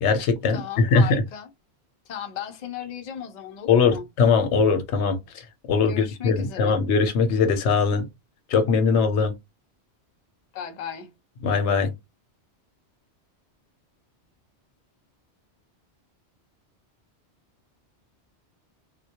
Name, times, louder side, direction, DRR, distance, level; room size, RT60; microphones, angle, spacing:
voice 1, 0.0-1.2 3.7-5.2 5.7-8.1 8.5-9.3 11.4-11.9, left 5 dB, 85° left, 0.9 m, -21 dB
voice 2, 0.5-1.5 2.1-4.1 5.9-6.8 10.5-11.1, left 8 dB, 55° left, 0.5 m, -35 dB
2.2 x 2.1 x 2.8 m
omnidirectional pair, 1.1 m